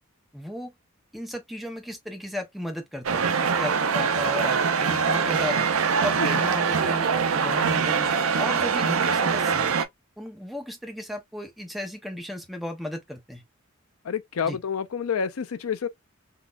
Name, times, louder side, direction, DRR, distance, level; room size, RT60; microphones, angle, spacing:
voice 1, 0.3-0.7 1.1-5.7 6.0-9.7 10.2-13.4 14.4-14.6, left 1 dB, ahead, 0.8 m, -35 dB
sound 1, 3.0-9.8, right 6 dB, 75° right, 0.6 m, -23 dB
voice 2, 14.0-15.9, left 6 dB, 85° left, 0.5 m, -28 dB
3.7 x 2.8 x 2.4 m
head